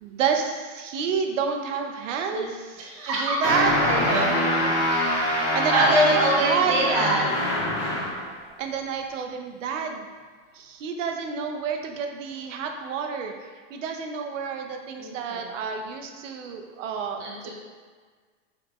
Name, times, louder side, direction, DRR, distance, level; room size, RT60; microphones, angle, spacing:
voice 1, 0.0-3.7 5.3-7.0 8.6-10.1 10.5-17.5, right 6 dB, 80° right, 4 dB, 0.6 m, -29 dB
voice 2, 2.8-3.4 3.9-5.1 5.7-7.3 15.0-15.5 17.2-17.5, right 1 dB, 25° right, -4 dB, 0.5 m, -25 dB
sound 1, 3.4-8.3, left 1 dB, 25° left, 0.7 m, -24 dB
4.8 x 3.0 x 2.3 m, 1.5 s
supercardioid pair, 170°, 38 cm